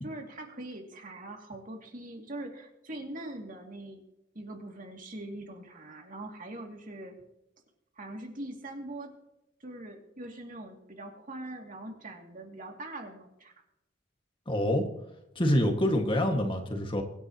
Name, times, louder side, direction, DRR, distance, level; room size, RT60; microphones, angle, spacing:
voice 1, 0.0-4.0 4.3-7.1 8.0-9.1 9.6-13.5, right 1 dB, 45° right, 2 dB, 2.6 m, -42 dB
voice 2, 14.5-14.9 15.4-17.0, equal, 25° left, 4 dB, 1.9 m, -26 dB
24.0 x 10.5 x 3.0 m, 0.85 s
head